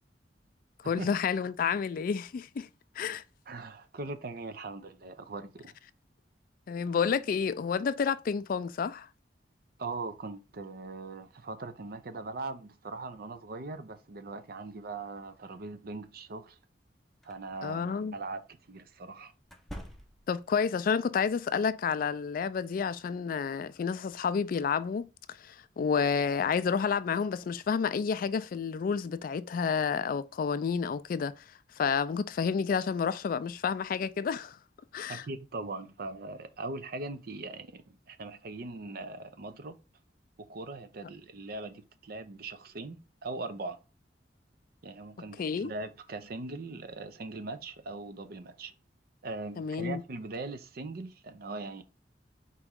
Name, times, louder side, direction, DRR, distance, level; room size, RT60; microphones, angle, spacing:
voice 1, 0.9-2.7 3.0-3.2 6.7-9.1 17.6-18.2 20.3-25.1 25.4-31.4 31.8-34.6 34.9-35.2 45.4-45.7 49.6-50.0, left 6 dB, 50° left, 0.3 m, -30 dB
voice 2, 3.5-5.7 9.8-16.6 17.2-19.3 35.1-39.7 40.5-43.8 44.8-48.7 49.2-51.8, right 3 dB, 55° right, 0.6 m, -40 dB
sound 1, 17.2-17.4 19.4-20.5, equal, ahead, 0.6 m, -45 dB
4.4 x 3.0 x 3.6 m
head